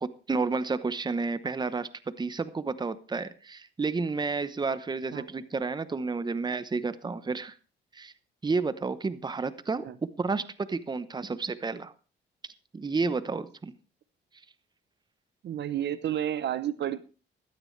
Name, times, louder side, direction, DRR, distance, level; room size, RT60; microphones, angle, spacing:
voice 1, 0.0-7.5 7.9-8.1 8.4-11.9 12.7-13.7, right 4 dB, 20° right, 0.9 m, -31 dB
voice 2, 5.1-5.4 9.8-10.0 15.4-17.0, right 11 dB, 65° right, 0.8 m, -31 dB
16.0 x 12.5 x 3.3 m
cardioid pair, 90°, 20 cm